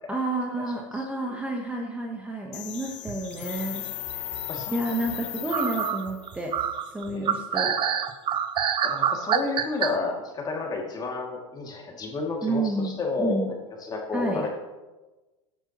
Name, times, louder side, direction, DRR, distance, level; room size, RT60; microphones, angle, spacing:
voice 1, 0.1-3.8 4.1-6.6 6.9-7.7 12.4-12.9 13.2-13.5 14.1-14.5, right 2 dB, 10° right, 1 dB, 1.1 m, -30 dB
sound 1, 2.5-6.4, left 16 dB, 70° left, 0.7 m, -36 dB
sound 2, 2.8-3.6 4.1-4.7 5.1-5.2 5.5-9.9, right 8 dB, 30° right, 0.7 m, -26 dB
voice 2, 8.8-13.4 13.8-14.5, left 3 dB, 25° left, 0 dB, 2.4 m, -31 dB
16.5 x 9.0 x 3.0 m, 1.2 s
supercardioid pair, 120°, 16 cm